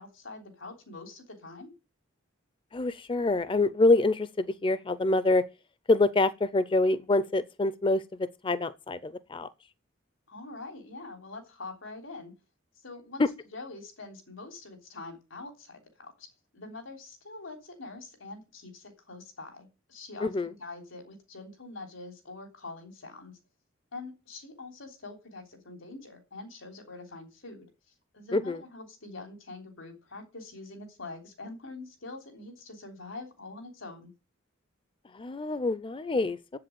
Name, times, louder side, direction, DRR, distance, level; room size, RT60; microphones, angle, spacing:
voice 1, 0.0-1.7 10.3-12.3 12.8-13.3 13.5-16.3 16.5-20.3 20.6-23.4 23.9-27.7 28.1-34.1, left 3 dB, 90° left, 3.3 m, -44 dB
voice 2, 2.7-5.4 5.9-9.5 13.2-13.3 20.2-20.5 28.3-28.6 35.1-36.4, left 2 dB, 25° left, 0.5 m, -26 dB
8.1 x 7.6 x 7.7 m
head